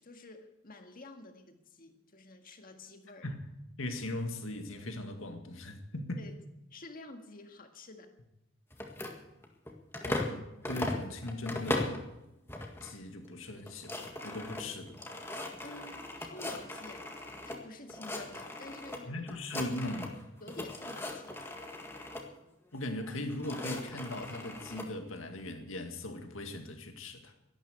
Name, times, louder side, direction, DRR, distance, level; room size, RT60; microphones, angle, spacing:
voice 1, 0.0-3.3 6.2-6.3 6.7-8.1 15.6-17.1 17.4-19.2 20.4-21.7, left 2 dB, 45° left, 5 dB, 1.8 m, -50 dB
voice 2, 3.8-6.2 10.0-12.1 12.8-15.0 19.1-20.2 22.7-27.3, left 1 dB, 75° left, 5 dB, 2.1 m, -39 dB
sound 1, 8.7-10.4 10.6-12.0 12.5-12.9 13.3-13.4 13.6-17.6 17.9-19.0 19.3-20.2 20.5-22.2 23.0-24.9, left 1 dB, 10° left, 1.7 m, -38 dB
12.5 x 12.0 x 8.2 m, 0.89 s
head